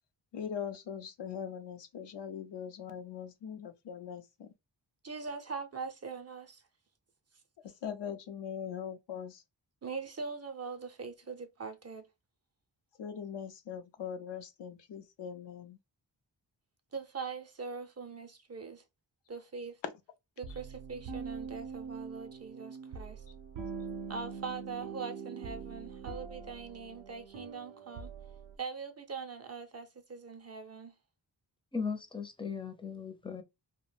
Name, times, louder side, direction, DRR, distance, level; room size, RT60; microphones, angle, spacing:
voice 1, 0.3-4.5 7.8-9.4 13.0-15.8 19.8-19.9, left 8 dB, 70° left, 0.5 m, -41 dB
voice 2, 5.0-6.6 9.8-12.1 16.9-18.8 19.3-19.8 20.4-23.2 24.1-28.1 28.6-30.9, right 5 dB, 35° right, 0.5 m, -42 dB
sound 1, 20.4-28.6, right 5 dB, 85° right, 0.6 m, -43 dB
voice 3, 31.7-33.4, left 5 dB, 10° left, 0.5 m, -37 dB
2.4 x 2.1 x 3.2 m
cardioid pair, 60°, 45 cm